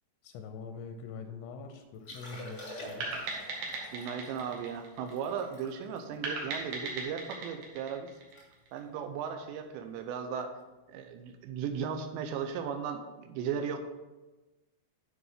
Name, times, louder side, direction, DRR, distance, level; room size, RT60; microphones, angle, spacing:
voice 1, 0.2-3.3, left 4 dB, 85° left, 5 dB, 2.8 m, -44 dB
Liquid, 1.9-7.3 7.8-7.9 8.1-8.5 8.7-9.0 9.6-9.8 11.3-11.4, left 1 dB, 50° left, 0.8 m, -48 dB
sound 1, 3.0-5.5 6.2-8.8, right 3 dB, 60° right, 2.7 m, -38 dB
voice 2, 3.9-8.1 8.7-10.6 10.9-13.8, right 7 dB, 80° right, 7 dB, 2.9 m, -36 dB
9.7 x 5.1 x 5.8 m, 1.1 s
omnidirectional pair, 5.4 m